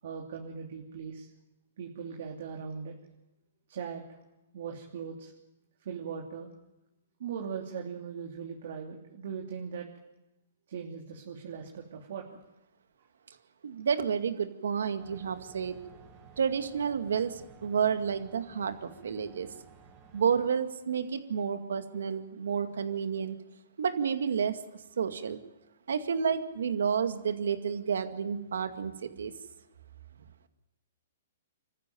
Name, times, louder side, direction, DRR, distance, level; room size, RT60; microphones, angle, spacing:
voice 1, 0.0-1.3 1.8-2.9 3.7-4.0 4.5-5.3 5.8-6.5 7.2-9.9 10.7-12.2, right 6 dB, 65° right, 1 dB, 3.0 m, -39 dB
voice 2, 13.6-15.8 16.4-19.5 20.1-23.4 23.8-24.6 25.0-25.4 25.9-29.3, right 7 dB, 80° right, 8 dB, 2.1 m, -30 dB
sound 1, 15.0-20.5, right 6 dB, 25° right, 2.8 m, -55 dB
26.0 x 14.5 x 9.3 m, 0.95 s
hypercardioid pair, 140°, 0 cm